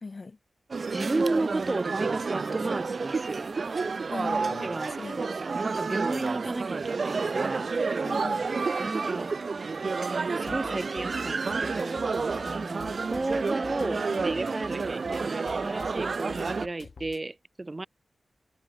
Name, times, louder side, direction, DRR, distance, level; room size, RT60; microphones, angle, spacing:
voice 1, 0.0-0.4 3.8-5.3 8.0-8.5 13.9-14.3, left 3 dB, 50° left, 1.9 m, -40 dB
sound 1, 0.7-16.7, right 4 dB, 60° right, 0.4 m, -30 dB
voice 2, 0.9-3.6 4.6-7.7 8.8-9.4 10.1-12.1 12.5-17.9, right 2 dB, 30° right, 2.2 m, -33 dB
sound 2, 10.4-17.2, left 5 dB, 70° left, 3.0 m, -47 dB
wide cardioid pair, 80°, 0 cm